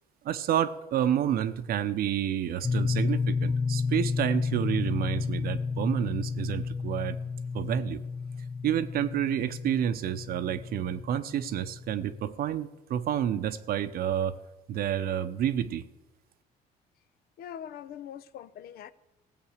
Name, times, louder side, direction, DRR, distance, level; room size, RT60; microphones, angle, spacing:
voice 1, 0.2-7.2 7.5-8.0 8.6-14.3 14.7-15.8, right 10 dB, 65° right, 0.8 m, -29 dB
sound 1, 2.6-12.2, left 4 dB, 15° left, 0.4 m, -31 dB
voice 2, 17.4-18.9, left 9 dB, 65° left, 0.7 m, -42 dB
16.5 x 7.8 x 6.5 m
cardioid pair, 110°, 17 cm